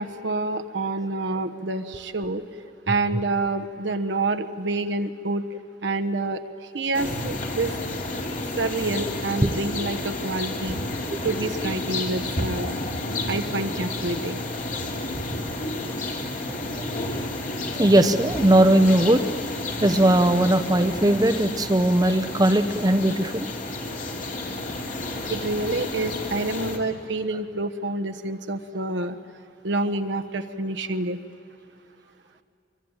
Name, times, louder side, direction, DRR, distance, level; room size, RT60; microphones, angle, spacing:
voice 1, 0.0-2.4 2.9-5.4 5.8-6.4 6.7-7.7 8.5-10.8 11.2-12.8 13.3-14.4 25.3-29.2 29.6-31.2, right 2 dB, 85° right, 9 dB, 1.2 m, -27 dB
sound 1, 6.9-26.8, left 2 dB, 45° left, 2.6 m, -31 dB
voice 2, 17.7-19.2 19.8-23.5, right 1 dB, 20° right, 9 dB, 0.7 m, -19 dB
24.0 x 23.5 x 9.0 m, 2.7 s
head